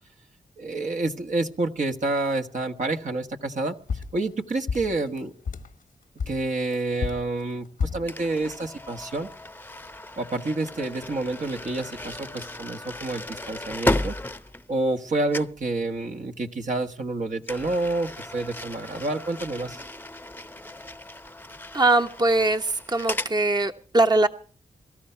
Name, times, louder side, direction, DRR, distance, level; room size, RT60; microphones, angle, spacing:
voice 1, 0.6-5.3 6.3-9.3 10.2-14.1 14.7-19.8, right 2 dB, 65° right, 3 dB, 1.6 m, -28 dB
sound 1, 3.9-5.8 6.2-8.1, left 5 dB, 75° left, 1.1 m, -31 dB
sound 2, 8.1-15.1 15.3-15.6 17.4-23.4, left 1 dB, 15° left, 0.8 m, -34 dB
voice 2, 21.7-24.3, right 2 dB, 30° right, 6 dB, 1.1 m, -21 dB
23.5 x 13.5 x 4.6 m, 0.40 s
cardioid pair, 50°, 14 cm